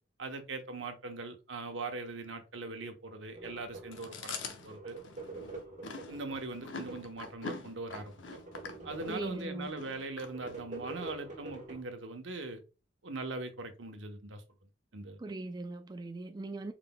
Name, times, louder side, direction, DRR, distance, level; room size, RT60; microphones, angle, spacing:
voice 1, 0.2-4.3 4.6-5.0 6.1-8.1 8.8-12.6 13.0-14.4 14.9-15.2, right 3 dB, 85° right, 0.9 m, -41 dB
sound 1, 3.3-4.1 4.6-7.2 7.7-9.7 10.2-11.8, right 3 dB, 40° right, 1.2 m, -45 dB
Chewing mastication, 3.9-10.9, left 4 dB, 80° left, 0.8 m, -44 dB
voice 2, 9.1-9.7 15.2-16.7, right 2 dB, 20° right, 0.4 m, -40 dB
4.8 x 3.8 x 2.2 m
head